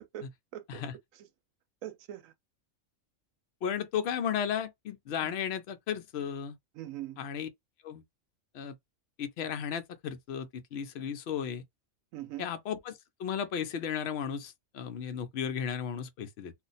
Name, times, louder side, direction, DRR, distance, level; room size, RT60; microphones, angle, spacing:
voice 1, 0.1-0.8 1.8-2.3 5.2-5.3 6.7-7.2 12.1-12.4, right 13 dB, 80° right, 1.0 m, -42 dB
voice 2, 3.6-6.5 7.2-7.5 7.8-8.0 8.5-8.7 9.2-11.6 12.4-16.5, left 8 dB, 60° left, 0.8 m, -34 dB
2.4 x 2.2 x 3.9 m
omnidirectional pair, 1.4 m